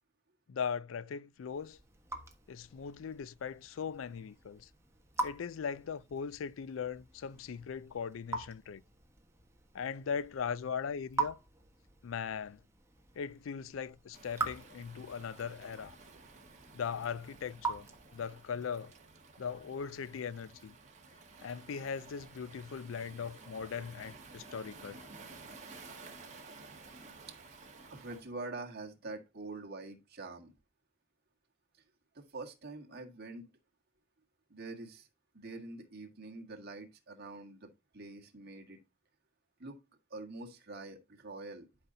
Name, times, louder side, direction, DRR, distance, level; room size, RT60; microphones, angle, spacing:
voice 1, 0.5-1.8 2.5-4.7 5.2-8.8 9.7-11.4 12.0-12.6 13.2-16.0 16.7-17.9 18.1-18.9 19.4-20.8 21.4-25.0, left 6 dB, 85° left, 0.4 m, -39 dB
Raindrop / Drip, 1.4-18.6, right 3 dB, 15° right, 1.4 m, -44 dB
Waves surf, 14.1-28.3, right 4 dB, 40° right, 1.8 m, -53 dB
voice 2, 27.9-30.5 32.1-33.5 34.5-35.1 35.3-38.8 39.6-39.8 40.1-41.7, right 3 dB, 55° right, 1.7 m, -45 dB
12.0 x 5.4 x 2.7 m
head